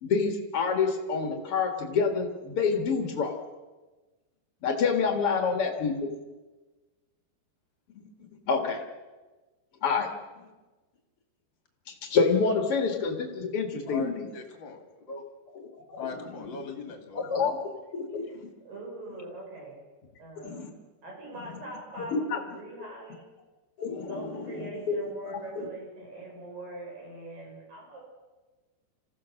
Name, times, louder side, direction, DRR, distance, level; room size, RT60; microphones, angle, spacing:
voice 1, 0.0-3.4 4.6-6.1 8.5-8.8 9.8-10.1 11.9-14.3 15.9-16.1 17.1-17.6 18.1-18.2 20.4-20.7 21.4-21.6 22.0-22.4 23.8-24.9 25.2-25.4, left 5 dB, 55° left, 4 dB, 1.7 m, -27 dB
voice 2, 13.9-14.8 15.1-15.2 16.0-17.5, left 4 dB, 35° left, 4 dB, 2.3 m, -39 dB
voice 3, 18.7-19.8 20.2-20.7 21.0-23.3 24.1-28.0, right 2 dB, 50° right, -2 dB, 7.7 m, -42 dB
26.5 x 16.0 x 6.4 m, 1.2 s
omnidirectional pair, 5.2 m